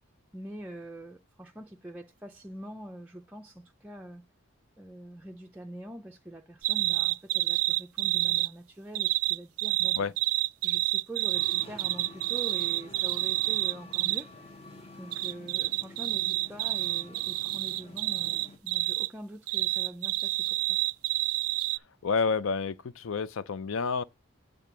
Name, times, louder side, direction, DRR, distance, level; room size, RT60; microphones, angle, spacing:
voice 1, 0.3-4.2 4.8-10.1 10.6-14.6 14.9-20.8, right 1 dB, 5° right, 0.4 m, -44 dB
sound 1, 6.6-8.5 8.9-14.2 15.1-19.1 19.5-21.8, right 18 dB, 75° right, 0.3 m, -28 dB
sound 2, 11.3-18.6, left 2 dB, 25° left, 0.8 m, -49 dB
voice 2, 22.0-24.0, left 5 dB, 65° left, 0.4 m, -29 dB
8.5 x 3.6 x 5.9 m
head